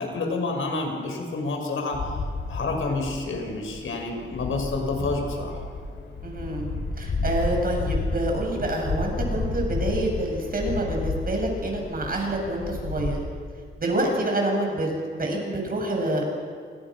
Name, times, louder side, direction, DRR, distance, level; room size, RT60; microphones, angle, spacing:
voice 1, 0.0-2.2 2.5-5.6, left 3 dB, 90° left, 2 dB, 6.3 m, -29 dB
sound 1, 1.9-13.2, left 3 dB, 70° left, 7.5 m, -31 dB
voice 2, 6.2-6.7 7.0-13.2 13.8-16.2, right 1 dB, 45° right, 1 dB, 7.7 m, -27 dB
29.5 x 27.5 x 6.4 m, 2.1 s
wide cardioid pair, 115°, 20 cm